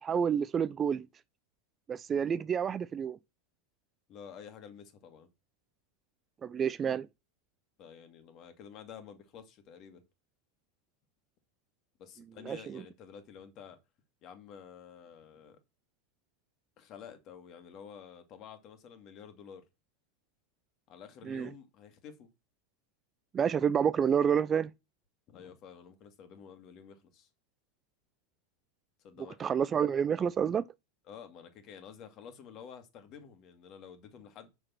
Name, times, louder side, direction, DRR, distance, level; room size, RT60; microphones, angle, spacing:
voice 1, 0.0-1.1 1.9-3.2 6.4-7.1 12.5-12.8 21.3-21.5 23.3-24.7 29.4-30.7, right 7 dB, 25° right, 0.4 m, -29 dB
voice 2, 4.1-5.3 7.8-10.0 12.0-13.8 14.2-15.6 16.8-19.7 20.9-22.3 25.3-27.3 29.0-29.5 31.1-34.5, left 7 dB, 40° left, 2.2 m, -50 dB
6.4 x 6.2 x 6.0 m
figure-of-eight pair, 85°, 0 cm